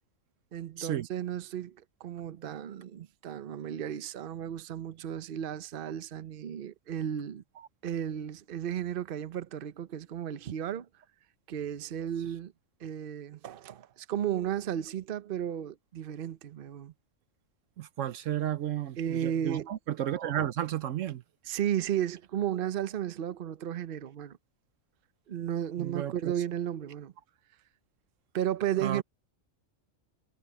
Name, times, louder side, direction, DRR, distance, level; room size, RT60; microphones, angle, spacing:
voice 1, 0.5-7.4 7.8-10.9 11.5-12.5 12.8-16.9 19.0-19.7 21.5-24.4 25.3-27.1 28.3-29.0, right 10 dB, 50° right, 0.9 m, -34 dB
voice 2, 17.8-21.2 25.8-26.3 28.8-29.0, right 11 dB, 75° right, 1.1 m, -33 dB
omnidirectional pair, 1.4 m